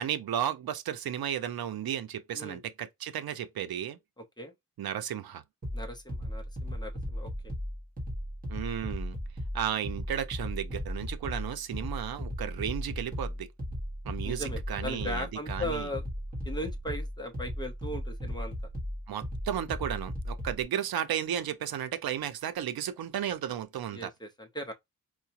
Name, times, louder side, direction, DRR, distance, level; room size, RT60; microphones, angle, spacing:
voice 1, 0.0-4.0 4.8-5.4 8.5-9.2 9.5-13.5 14.0-15.9 19.1-24.1, right 10 dB, 85° right, 0.6 m, -34 dB
voice 2, 4.2-4.5 5.7-7.5 14.2-16.0 16.4-18.5 23.9-24.7, equal, 10° left, 0.7 m, -38 dB
sound 1, 5.6-20.6, equal, 25° right, 1.5 m, -36 dB
4.7 x 2.2 x 2.8 m
wide cardioid pair, 165°, 35 cm